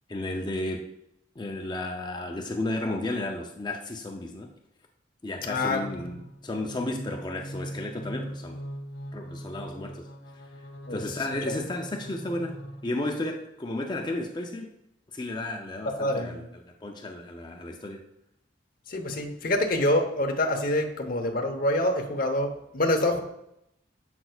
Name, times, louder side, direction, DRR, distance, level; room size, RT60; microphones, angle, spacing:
voice 1, 0.1-0.9 1.4-4.5 5.2-8.6 9.1-10.1 10.9-14.7 15.1-18.0, left 2 dB, 25° left, 2 dB, 0.5 m, -33 dB
sound 1, 5.3-13.3, equal, 70° left, 1.5 m, -41 dB
voice 2, 5.5-6.2 10.9-11.0 11.5-11.6 15.8-16.4 18.9-23.2, left 1 dB, 50° left, 3 dB, 0.8 m, -26 dB
7.7 x 6.0 x 2.3 m, 0.80 s
head